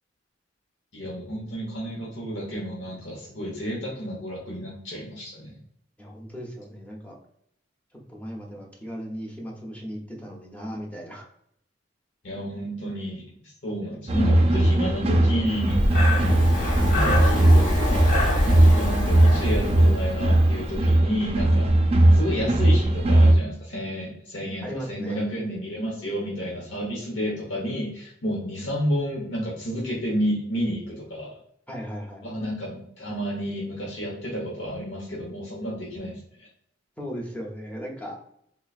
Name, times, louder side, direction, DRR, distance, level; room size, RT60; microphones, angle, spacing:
voice 1, 0.9-5.5 12.2-13.2 13.6-15.8 16.8-21.7 22.1-31.3 32.2-36.2, equal, 80° left, -4 dB, 1.1 m, -31 dB
voice 2, 6.0-7.2 8.1-11.3 13.7-13.9 14.3-14.5 16.0-16.2 24.6-25.2 31.7-32.2 37.0-38.2, equal, 10° left, -1 dB, 0.8 m, -37 dB
sound 1, 14.1-23.3, right 1 dB, 35° right, 0.5 m, -19 dB
Breathing, 15.6-20.5, left 1 dB, 45° left, 1.0 m, -24 dB
3.9 x 3.0 x 2.4 m, 0.71 s
head